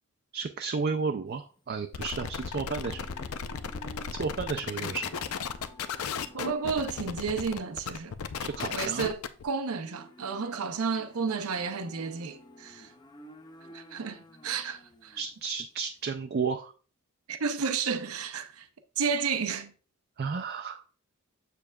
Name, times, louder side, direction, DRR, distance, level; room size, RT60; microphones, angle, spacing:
voice 1, 0.3-3.1 4.2-5.2 8.4-9.1 15.1-16.7 20.2-20.8, right 5 dB, 45° right, 0.4 m, -32 dB
Livestock farm animals working animals, 1.3-16.0, equal, 20° left, 0.5 m, -53 dB
sound 1, 1.9-9.4, left 6 dB, 85° left, 0.5 m, -35 dB
voice 2, 6.3-8.1 8.7-12.9 13.7-15.2 17.3-18.7 19.0-19.7, right 5 dB, 90° right, 0.6 m, -32 dB
7.1 x 6.8 x 2.3 m
head